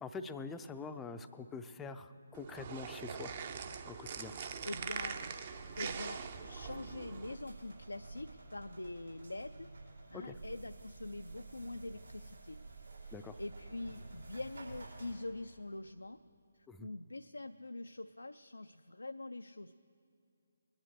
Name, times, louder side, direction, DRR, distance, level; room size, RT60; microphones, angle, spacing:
voice 1, 0.0-3.4 3.9-4.3 10.1-10.3 13.1-13.4 16.7-16.9, left 4 dB, 10° left, 8 dB, 0.5 m, -45 dB
sound 1, 2.3-7.4, right 6 dB, 35° right, 0.8 m, -43 dB
voice 2, 4.3-5.3 5.8-9.7 10.1-12.6 13.0-16.2 16.5-19.8, left 2 dB, 80° left, 9 dB, 0.4 m, -45 dB
sound 2, 4.7-15.1, right 3 dB, 75° right, 4.1 m, -51 dB
20.5 x 10.5 x 6.5 m, 2.5 s
figure-of-eight pair, 145°, 0 cm